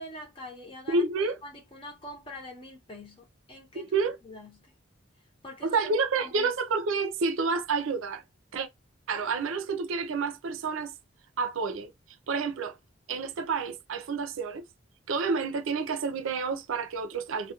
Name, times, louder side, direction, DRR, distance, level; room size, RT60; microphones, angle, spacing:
voice 1, 0.0-1.0 1.4-3.9 4.2-4.7 5.4-6.5, left 1 dB, 25° left, 0.7 m, -44 dB
voice 2, 0.9-1.3 3.8-4.2 5.6-8.2 8.5-8.7 9.1-10.9 11.4-11.9 12.3-12.7 13.1-14.6 15.1-17.5, right 4 dB, 90° right, 0.5 m, -29 dB
2.3 x 2.1 x 2.8 m
head